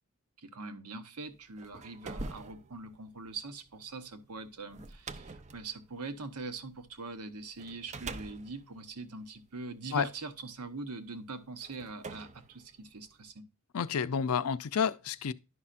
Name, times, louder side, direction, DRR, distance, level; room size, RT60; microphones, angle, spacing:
voice 1, 0.4-13.4, right 3 dB, 85° right, 1.0 m, -43 dB
sound 1, 1.4-7.0 7.6-10.0 10.9-11.0 11.6-13.3, right 3 dB, 30° right, 0.5 m, -46 dB
voice 2, 13.7-15.3, left 6 dB, 70° left, 0.5 m, -30 dB
11.0 x 5.6 x 2.5 m
head